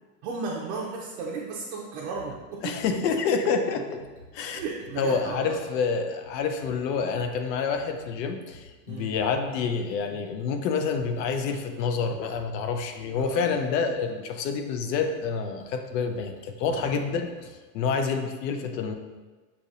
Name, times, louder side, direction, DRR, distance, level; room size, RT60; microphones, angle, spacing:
voice 1, 0.2-2.8 4.6-5.6 8.9-9.1 13.1-13.5 16.7-17.0, right 4 dB, 45° right, -3 dB, 0.5 m, -34 dB
sound 1, 2.1-17.5, equal, 40° left, 1.4 m, -50 dB
voice 2, 2.6-4.0 4.3-4.6 5.0-17.3 17.7-19.0, left 5 dB, 85° left, 6 dB, 0.7 m, -28 dB
6.6 x 2.8 x 2.6 m, 1.3 s
supercardioid pair, 175°, 48 cm